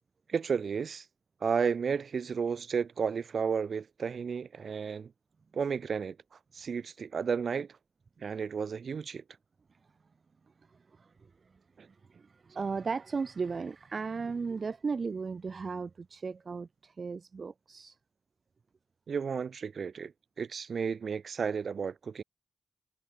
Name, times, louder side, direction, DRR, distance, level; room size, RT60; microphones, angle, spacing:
voice 1, 0.3-1.0 1.4-5.1 5.5-6.2 6.5-7.8 8.2-9.2 11.8-11.9 19.1-20.1 20.4-22.2, right 6 dB, 70° right, 1.4 m, -32 dB
voice 2, 10.7-11.1 11.9-18.0, right 4 dB, 55° right, 0.4 m, -36 dB
wide cardioid pair, 100°, 0 cm